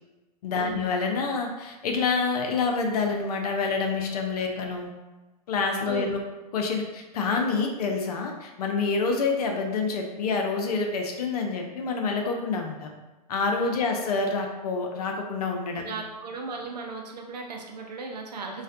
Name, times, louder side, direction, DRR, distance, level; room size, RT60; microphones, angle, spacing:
voice 1, 0.4-4.9 5.5-6.2 6.5-12.9 13.3-15.9, left 4 dB, 70° left, 2 dB, 0.5 m, -27 dB
voice 2, 15.8-18.6, right 4 dB, 85° right, 2 dB, 0.5 m, -36 dB
2.4 x 2.1 x 2.5 m, 1.1 s
hypercardioid pair, 115°, 21 cm